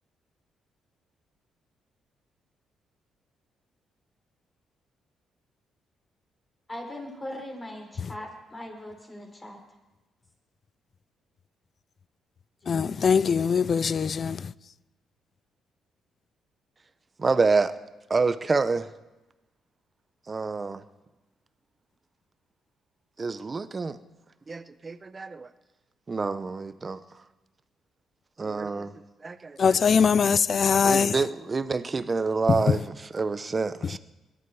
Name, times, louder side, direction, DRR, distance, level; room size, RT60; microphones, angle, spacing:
voice 1, 6.7-9.6 12.7-13.0, left 1 dB, 15° left, 5.4 m, -40 dB
voice 2, 12.7-14.4 29.6-31.1, left 6 dB, 45° left, 0.4 m, -22 dB
voice 3, 17.2-17.7 18.1-18.9 20.3-20.8 23.2-24.0 24.5-25.5 26.1-27.0 28.4-28.9 29.2-29.8 30.8-34.0, right 4 dB, 30° right, 0.9 m, -27 dB
21.5 x 12.5 x 4.8 m
cardioid pair, 90°, 0 cm